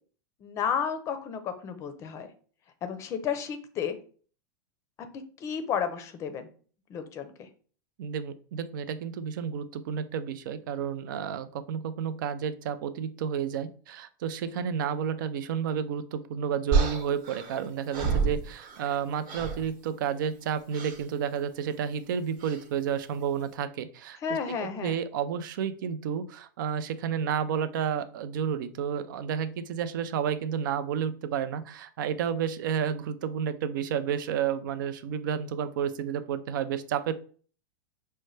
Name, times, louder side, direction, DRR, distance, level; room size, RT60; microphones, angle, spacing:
voice 1, 0.4-2.3 2.8-4.0 5.1-6.5 6.9-7.3 24.2-25.0, left 7 dB, 25° left, 9 dB, 0.5 m, -32 dB
voice 2, 8.0-37.1, right 8 dB, 70° right, 12 dB, 0.5 m, -31 dB
sound 1, 16.7-19.0 19.3-19.7 20.7-21.0 22.4-22.7, right 5 dB, 40° right, 1.0 m, -29 dB
5.3 x 2.2 x 3.1 m, 0.43 s
supercardioid pair, 145°, 11 cm